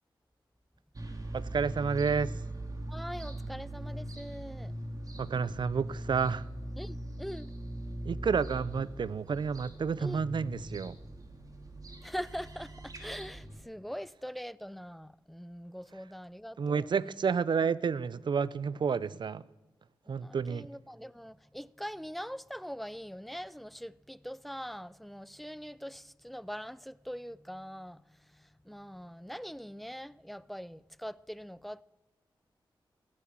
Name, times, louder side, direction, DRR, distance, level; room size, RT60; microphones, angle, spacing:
sound 1, 0.9-13.6, right 1 dB, 45° right, 2.1 m, -41 dB
voice 1, 1.3-2.3 5.2-6.5 8.1-10.9 16.6-19.4 20.1-20.7, right 6 dB, 60° right, 0.5 m, -30 dB
voice 2, 2.9-4.7 6.8-7.5 10.0-10.2 12.0-17.2 17.6-17.7 20.1-31.8, equal, ahead, 0.4 m, -43 dB
15.5 x 8.8 x 7.1 m
cardioid pair, 65°, 9 cm